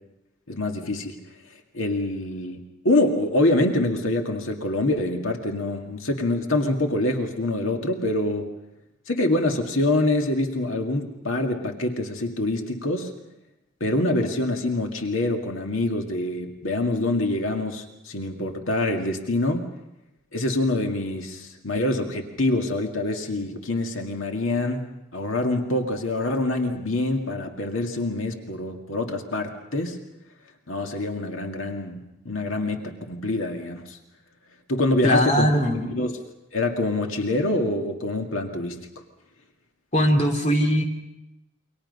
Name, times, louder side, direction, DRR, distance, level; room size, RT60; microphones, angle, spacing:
voice 1, 0.5-1.2 1.7-8.5 9.1-13.1 13.8-19.7 20.3-30.0 30.7-34.0 34.7-35.5 35.9-36.1 36.5-38.8, left 2 dB, 80° left, 3 dB, 2.1 m, -25 dB
voice 2, 35.0-35.9 39.9-40.8, equal, 35° left, 3 dB, 2.8 m, -20 dB
28.5 x 24.5 x 5.5 m, 0.91 s
head